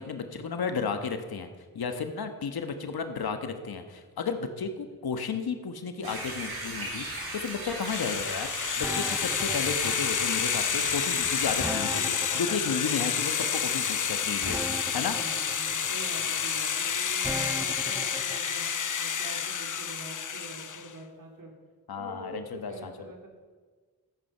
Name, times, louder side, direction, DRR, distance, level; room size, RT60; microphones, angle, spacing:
voice 1, 0.0-1.5 1.7-8.5 8.8-15.2 21.9-22.9, left 5 dB, 75° left, 7 dB, 1.2 m, -33 dB
sound 1, 6.0-11.6, right 1 dB, 75° right, 3.9 m, -37 dB
sound 2, 7.8-20.9, left 7 dB, 55° left, 0.9 m, -29 dB
sound 3, 8.8-18.4, equal, 5° right, 0.9 m, -38 dB
voice 2, 15.2-21.5 22.0-23.3, right 2 dB, 55° right, 1 dB, 2.9 m, -45 dB
13.5 x 9.2 x 5.6 m, 1.5 s
cardioid pair, 45°, 38 cm